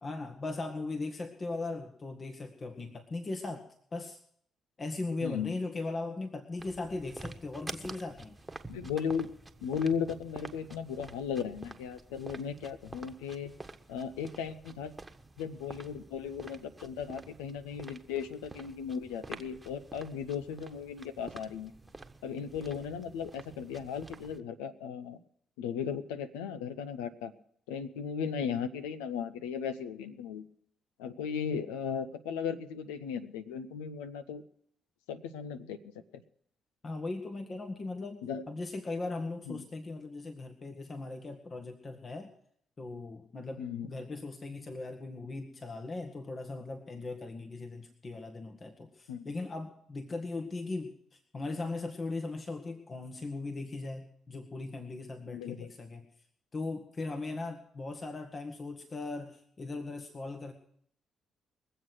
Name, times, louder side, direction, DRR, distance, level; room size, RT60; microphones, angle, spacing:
voice 1, 0.0-3.6 3.9-4.2 4.8-8.4 36.8-42.3 42.8-56.0 56.5-60.5, left 3 dB, 40° left, 6 dB, 1.7 m, -39 dB
voice 2, 5.2-5.5 8.7-9.3 9.6-13.5 13.9-14.9 15.4-21.7 22.2-25.2 25.6-27.3 27.7-30.5 31.0-34.4 35.1-35.8 36.1-36.2 38.2-38.4 39.5-39.6 43.6-43.9 49.1-49.3 55.3-55.7, left 7 dB, 85° left, 10 dB, 0.8 m, -36 dB
sound 1, 6.6-24.4, right 2 dB, 20° right, 1.3 m, -49 dB
22.0 x 8.0 x 6.3 m, 0.67 s
hypercardioid pair, 45°, 0 cm